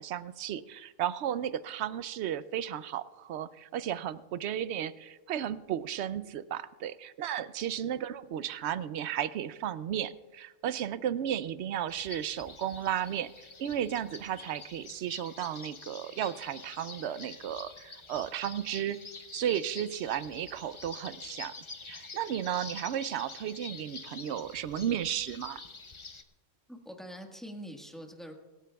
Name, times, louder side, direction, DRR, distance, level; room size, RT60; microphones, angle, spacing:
voice 1, 0.0-13.3 13.6-19.0 19.3-21.5 21.8-25.6, right 10 dB, 65° right, 15 dB, 0.8 m, -34 dB
sound 1, 11.9-26.2, left 4 dB, 30° left, 0.6 m, -47 dB
voice 2, 26.7-28.3, equal, ahead, 2 dB, 1.3 m, -44 dB
25.0 x 13.0 x 2.3 m, 1.2 s
omnidirectional pair, 1.3 m